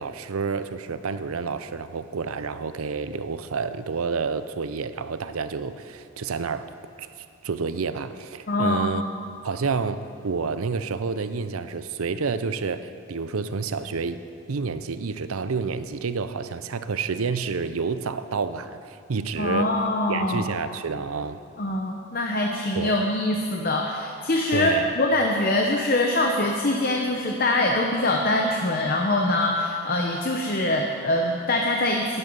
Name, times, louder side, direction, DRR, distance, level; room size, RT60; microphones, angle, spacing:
voice 1, 0.0-6.7 7.0-9.0 9.4-19.7 20.1-21.4 22.8-23.0 24.5-24.9, right 5 dB, 85° right, 12 dB, 0.6 m, -29 dB
voice 2, 8.5-9.0 19.4-20.5 21.6-32.2, left 1 dB, 45° left, 1 dB, 0.8 m, -24 dB
12.0 x 11.0 x 5.3 m, 2.4 s
head